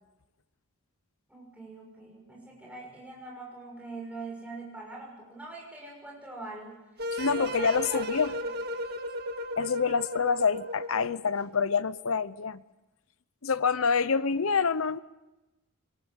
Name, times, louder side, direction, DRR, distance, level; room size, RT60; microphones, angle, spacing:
voice 1, 1.3-6.8 7.2-8.4, right 3 dB, 5° right, -2 dB, 6.2 m, -43 dB
sound 1, 7.0-11.3, left 1 dB, 45° right, 1.6 m, -35 dB
voice 2, 7.1-8.4 9.6-12.6 13.4-15.0, left 5 dB, 75° left, 16 dB, 0.7 m, -27 dB
23.5 x 19.5 x 7.0 m, 0.99 s
head